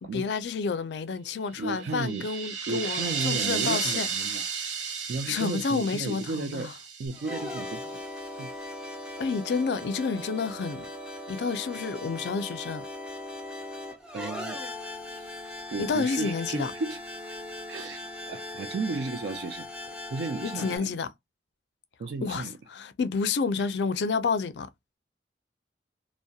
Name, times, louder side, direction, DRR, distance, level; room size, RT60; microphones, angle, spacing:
voice 1, 0.0-4.1 5.3-6.7 9.2-10.9 11.3-12.8 15.8-16.7 20.4-21.1 22.2-24.7, left 5 dB, 70° left, 0.4 m, -29 dB
voice 2, 1.6-2.3 2.7-4.5 5.1-6.7 7.0-8.0 8.4-8.5 14.1-14.6 15.1-15.3 15.6-17.0 17.7-19.7 20.1-20.9 22.0-22.5, right 3 dB, 60° right, 0.3 m, -34 dB
sound 1, 1.7-7.9, right 6 dB, 80° right, 0.7 m, -33 dB
sound 2, 7.1-20.8, left 2 dB, 5° right, 0.6 m, -39 dB
2.6 x 2.0 x 2.2 m
head